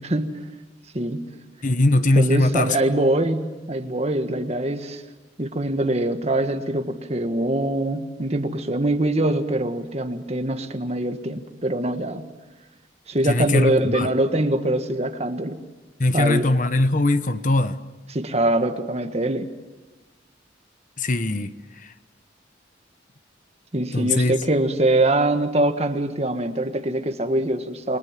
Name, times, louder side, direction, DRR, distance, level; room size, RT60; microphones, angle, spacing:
voice 1, 0.1-0.5 0.9-1.3 2.1-5.0 5.4-12.3 13.1-15.6 16.1-16.5 18.1-19.5 23.7-28.0, right 1 dB, 35° right, 1.7 m, -23 dB
voice 2, 1.6-2.7 13.3-14.1 16.0-17.8 21.0-21.5 23.9-24.3, left 2 dB, 45° left, 1.1 m, -20 dB
29.0 x 23.0 x 7.6 m
head